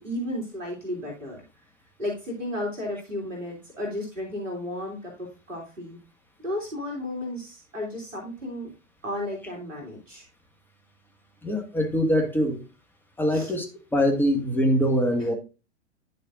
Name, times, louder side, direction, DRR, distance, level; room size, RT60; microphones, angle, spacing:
voice 1, 0.0-1.4 2.0-6.0 6.4-8.7 9.0-10.2 13.3-13.5 15.2-15.3, left 1 dB, 90° right, 3.3 m, -33 dB
voice 2, 11.4-12.6 13.2-13.7 13.9-15.3, equal, 5° left, 1.6 m, -23 dB
10.5 x 6.7 x 2.5 m
figure-of-eight pair, 100°, 37 cm